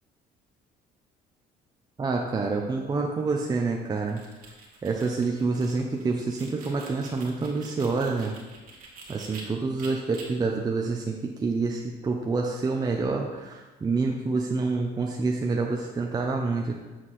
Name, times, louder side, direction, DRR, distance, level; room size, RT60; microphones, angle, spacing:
voice 1, 2.0-4.2 4.8-8.3 9.1-16.7, right 3 dB, 25° right, 1 dB, 0.6 m, -27 dB
sound 1, 3.9-9.4 9.8-10.2, right 4 dB, 60° right, 1.7 m, -47 dB
7.5 x 4.7 x 4.1 m, 1.2 s
cardioid pair, 110°, 17 cm